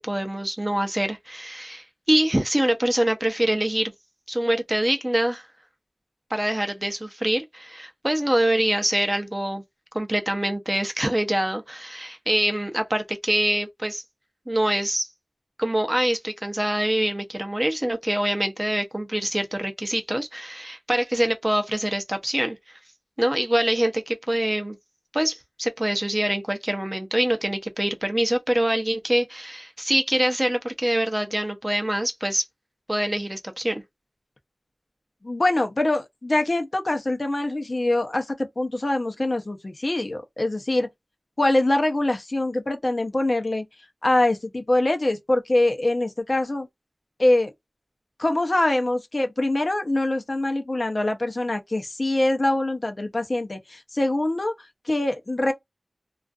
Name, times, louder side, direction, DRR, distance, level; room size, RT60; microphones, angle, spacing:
voice 1, 0.0-3.9 4.3-5.4 6.3-9.6 9.9-14.0 14.5-15.1 15.6-22.8 23.2-24.8 25.1-32.4 32.9-33.8, right 1 dB, 20° right, 0.6 m, -25 dB
voice 2, 35.2-40.9 41.4-43.6 44.0-46.7 47.2-47.5 48.2-55.5, left 1 dB, 45° left, 0.6 m, -24 dB
2.4 x 2.4 x 2.4 m
wide cardioid pair, 65°, 0 cm